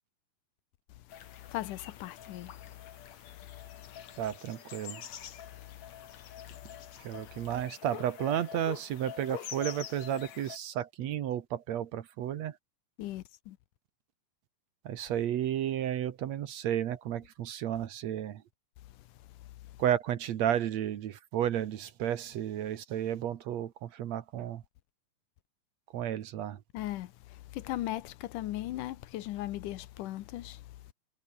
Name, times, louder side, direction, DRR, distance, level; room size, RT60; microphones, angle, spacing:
sound 1, 1.1-10.6, left 9 dB, 60° left, 2.9 m, -46 dB
voice 1, 1.4-2.8 3.0-3.2 3.9-4.1 5.6-5.8 13.0-13.6 26.7-30.8, left 15 dB, 80° left, 2.5 m, -38 dB
voice 2, 4.2-5.0 7.0-12.5 14.9-18.4 19.8-24.6 25.9-26.6, right 10 dB, 65° right, 2.2 m, -32 dB
omnidirectional pair, 3.7 m